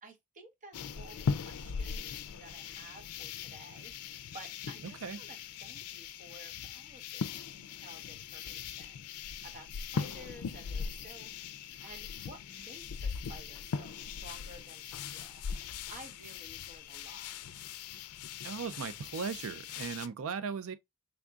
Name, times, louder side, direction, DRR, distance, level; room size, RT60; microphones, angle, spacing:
voice 1, 0.0-11.3 11.6-17.3, right 1 dB, 35° right, 1.1 m, -54 dB
sound 1, 0.7-20.1, left 6 dB, 90° left, 0.4 m, -40 dB
voice 2, 18.4-20.8, right 6 dB, 65° right, 0.4 m, -37 dB
3.8 x 3.5 x 2.3 m
head